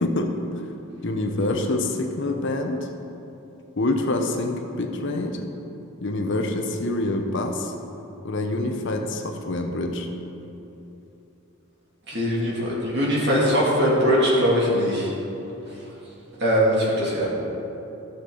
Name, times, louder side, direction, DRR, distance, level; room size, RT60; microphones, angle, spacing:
voice 1, 0.0-0.7 1.0-2.9 3.8-5.4 6.0-7.7 8.2-10.1, left 2 dB, 55° left, 4 dB, 0.8 m, -26 dB
voice 2, 12.1-15.1 16.4-17.3, equal, 50° right, -6 dB, 2.5 m, -21 dB
15.0 x 6.7 x 3.8 m, 2.9 s
head